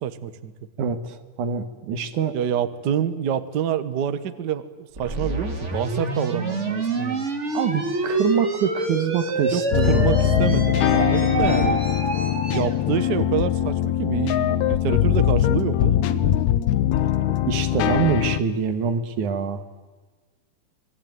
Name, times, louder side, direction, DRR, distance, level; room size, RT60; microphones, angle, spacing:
voice 1, 0.0-0.5 2.3-7.3 9.5-11.8 12.5-16.4, right 8 dB, 55° right, 12 dB, 1.2 m, -27 dB
voice 2, 0.8-2.4 7.5-10.8 17.2-19.6, right 7 dB, 85° right, 10 dB, 3.0 m, -25 dB
sound 1, 5.0-12.7, right 2 dB, 25° right, 2.5 m, -27 dB
sound 2, 9.7-18.4, left 11 dB, 75° left, 2.2 m, -21 dB
26.5 x 21.5 x 9.2 m, 1.3 s
omnidirectional pair, 3.4 m